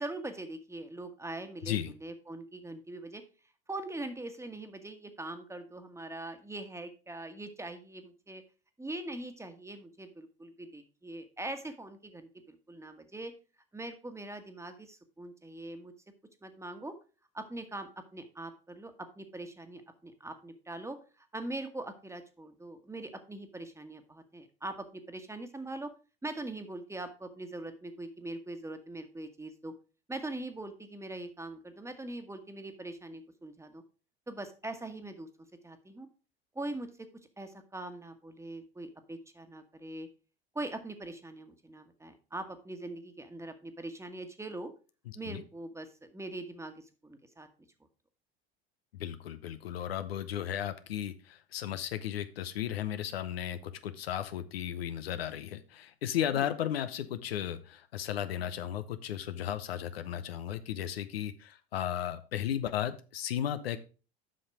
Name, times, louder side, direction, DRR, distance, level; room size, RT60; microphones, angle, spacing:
voice 1, 0.0-3.2 3.7-8.4 8.8-13.3 13.7-15.9 16.4-16.9 17.3-25.9 26.2-29.7 30.1-33.8 34.3-35.3 35.6-36.1 36.5-37.1 37.4-40.1 40.5-44.7 45.1-47.5 56.3-56.5, right 2 dB, 10° right, 8 dB, 1.4 m, -42 dB
voice 2, 1.6-1.9 45.1-45.4 48.9-63.8, left 10 dB, 80° left, 11 dB, 0.8 m, -35 dB
7.7 x 5.8 x 4.8 m, 0.34 s
hypercardioid pair, 75°, 30 cm